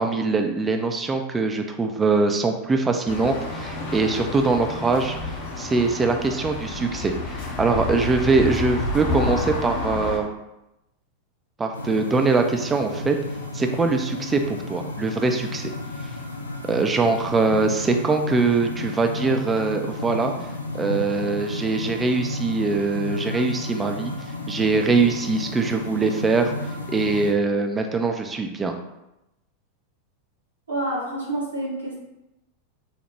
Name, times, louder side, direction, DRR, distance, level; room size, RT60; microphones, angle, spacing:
voice 1, 0.0-5.2 5.6-10.3 11.6-13.2 13.5-15.7 16.7-20.3 20.7-24.1 24.5-26.5 26.9-28.7, right 3 dB, 15° right, 5 dB, 0.4 m, -22 dB
sound 1, 3.1-10.2, left 2 dB, 50° left, 0.7 m, -29 dB
sound 2, 11.7-27.3, left 2 dB, 80° left, 0.4 m, -33 dB
voice 2, 30.7-32.0, right 1 dB, 75° right, -4 dB, 1.1 m, -28 dB
4.2 x 2.0 x 3.2 m, 0.91 s
figure-of-eight pair, 90°, 0 cm